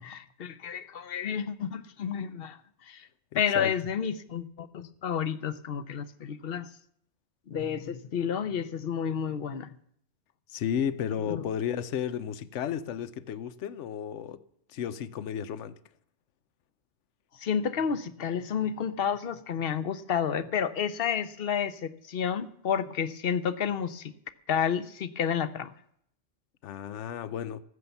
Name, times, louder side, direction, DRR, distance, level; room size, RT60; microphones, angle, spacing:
voice 1, 0.0-3.1 3.3-6.7 7.5-9.7 11.3-11.4 17.3-24.1 24.5-25.7, left 7 dB, 55° left, 1.0 m, -30 dB
voice 2, 3.3-3.7 10.5-14.4 14.7-15.8 26.6-27.6, left 8 dB, 80° left, 1.0 m, -33 dB
14.5 x 9.7 x 7.0 m
omnidirectional pair, 1.2 m